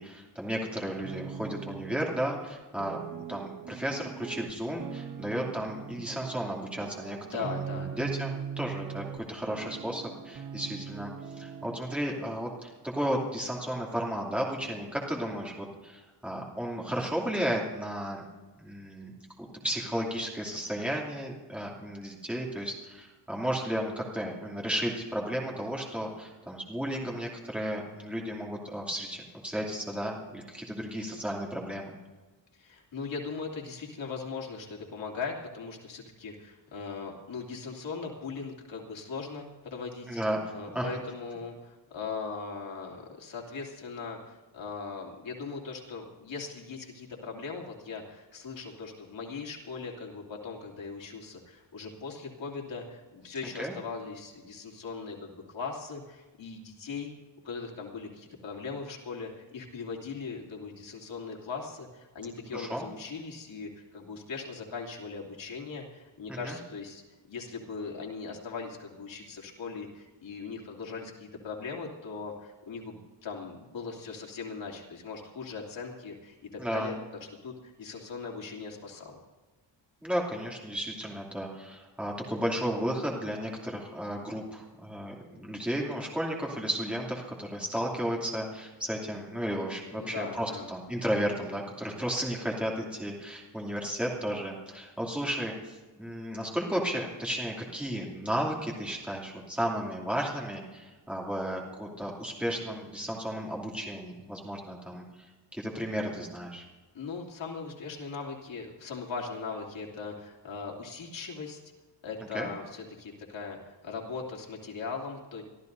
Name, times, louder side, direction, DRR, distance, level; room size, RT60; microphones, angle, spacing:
voice 1, 0.0-3.0 3.3-11.1 11.4-18.2 18.6-19.1 19.4-32.0 40.1-40.9 53.6-53.7 62.5-62.8 66.3-66.6 76.6-76.9 80.0-105.0 105.5-106.7 112.3-112.5, equal, 5° right, -3 dB, 2.6 m, -33 dB
sound 1, 0.9-2.5 2.8-6.5 6.8-9.2 9.5-11.8, right 7 dB, 45° right, 1.0 m, -40 dB
voice 2, 7.3-7.9 32.5-40.2 40.5-57.1 57.4-67.0 67.3-77.0 77.4-79.2 89.9-90.7 106.9-111.6 112.0-115.4, left 4 dB, 80° left, -1 dB, 2.9 m, -39 dB
25.0 x 13.5 x 2.7 m, 1.2 s
wide cardioid pair, 175°, 45 cm